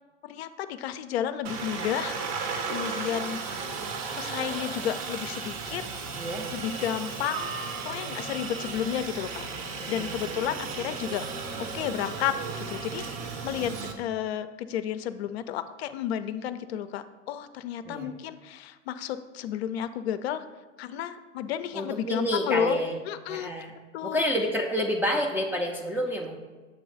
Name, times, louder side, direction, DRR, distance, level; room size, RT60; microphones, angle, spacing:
voice 1, 0.2-2.2 2.7-3.4 4.2-5.8 6.5-7.5 7.8-9.4 9.9-11.3 11.7-12.3 12.7-20.4 20.8-22.8 23.1-23.5 23.9-24.3, left 10 dB, 60° left, 11 dB, 0.4 m, -32 dB
Aircraft, 1.4-13.9, right 5 dB, 45° right, 0.8 m, -35 dB
voice 2, 6.1-6.5 9.8-10.2 17.8-18.1 21.7-23.0 23.3-23.7 24.0-26.4, equal, 5° right, 0 dB, 0.3 m, -29 dB
7.3 x 3.0 x 5.1 m, 1.3 s
figure-of-eight pair, 90°, 36 cm